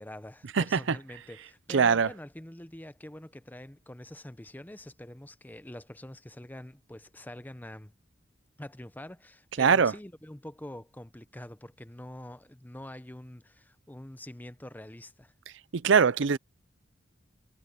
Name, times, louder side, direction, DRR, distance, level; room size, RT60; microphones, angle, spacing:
voice 1, 0.0-7.9 8.6-15.3, left 1 dB, 10° left, 0.7 m, -45 dB
voice 2, 0.5-1.0 1.7-2.1 9.6-9.9 15.7-16.4, right 6 dB, 65° right, 0.5 m, -22 dB
head